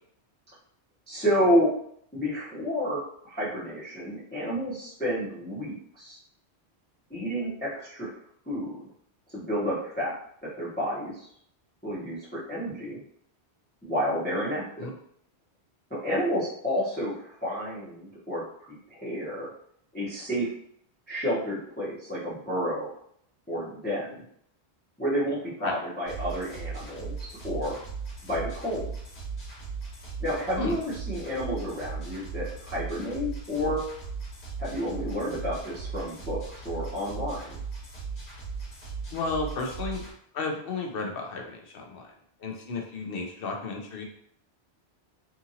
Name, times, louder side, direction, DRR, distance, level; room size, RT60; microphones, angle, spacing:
voice 1, 1.1-1.7 2.1-6.2 7.1-8.1 8.5-8.8 9.3-11.3 11.8-13.0 13.8-14.9 15.9-19.5 19.9-20.5 21.1-22.9 23.5-24.2 25.0-27.8 28.2-28.9 30.2-33.8 34.6-36.4 36.6-37.4, equal, 10° left, -9 dB, 0.8 m, -30 dB
sound 1, 26.1-40.1, right 5 dB, 80° left, 1.4 m, -38 dB
voice 2, 39.1-40.0 40.3-42.1 42.4-44.0, left 3 dB, 65° left, 2 dB, 0.8 m, -33 dB
2.8 x 2.5 x 2.7 m, 0.66 s
omnidirectional pair, 1.1 m